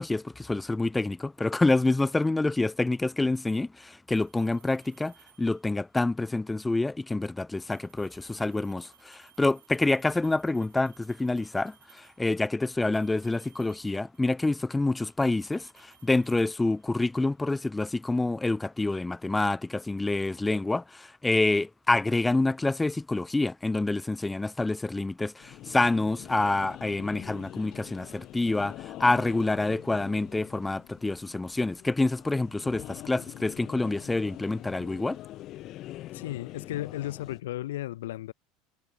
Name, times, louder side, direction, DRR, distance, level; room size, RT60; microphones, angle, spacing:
voice 1, 0.0-35.2, left 2 dB, 10° left, 0.4 m, -27 dB
sound 1, 4.1-5.8 7.6-12.3 12.8-14.4 14.7-17.2, right 13 dB, 90° right, 4.9 m, -61 dB
sound 2, 25.4-37.4, left 15 dB, 55° left, 4.6 m, -44 dB
voice 2, 36.1-38.3, left 15 dB, 85° left, 0.5 m, -34 dB
hypercardioid pair, 90°, 0 cm